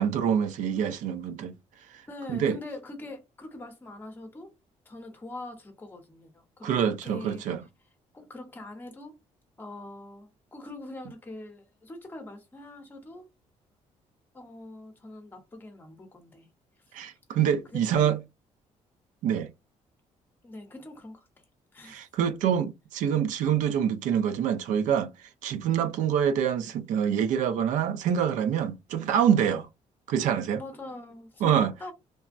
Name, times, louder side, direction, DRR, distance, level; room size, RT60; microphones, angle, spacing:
voice 1, 0.0-1.5 2.3-2.6 6.6-7.6 16.9-18.2 19.2-19.5 21.9-25.1 25.4-29.7 30.1-30.6 31.4-31.7, right 8 dB, 90° right, 0.5 m, -26 dB
voice 2, 2.1-4.5 4.9-7.4 8.1-9.2 9.6-13.3 14.3-16.5 17.4-18.2 20.4-21.3 21.7-22.0 30.5-31.9, left 2 dB, 15° left, 0.8 m, -43 dB
3.3 x 2.1 x 2.5 m
cardioid pair, 175°, 13 cm